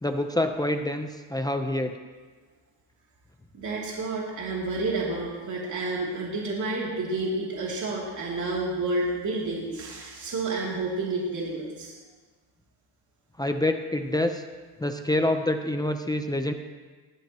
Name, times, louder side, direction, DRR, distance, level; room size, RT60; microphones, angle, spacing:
voice 1, 0.0-2.0 13.4-14.4 14.8-16.5, left 1 dB, 10° left, 5 dB, 0.8 m, -26 dB
voice 2, 3.5-11.9, right 2 dB, 45° right, -4 dB, 3.1 m, -30 dB
19.5 x 14.0 x 3.1 m, 1.4 s
cardioid pair, 100°, 42 cm